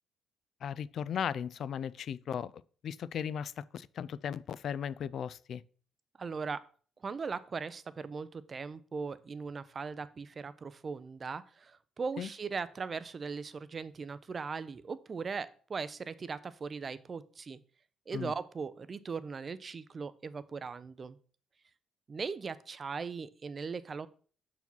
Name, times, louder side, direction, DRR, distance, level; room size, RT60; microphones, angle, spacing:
voice 1, 0.6-2.5 2.8-5.6 12.2-12.3 18.1-18.3, left 8 dB, 55° left, 0.3 m, -36 dB
voice 2, 6.2-6.6 7.0-17.6 18.1-21.2 22.1-24.1, right 5 dB, 30° right, 0.4 m, -39 dB
6.0 x 4.8 x 5.3 m
cardioid pair, 125°, 0 cm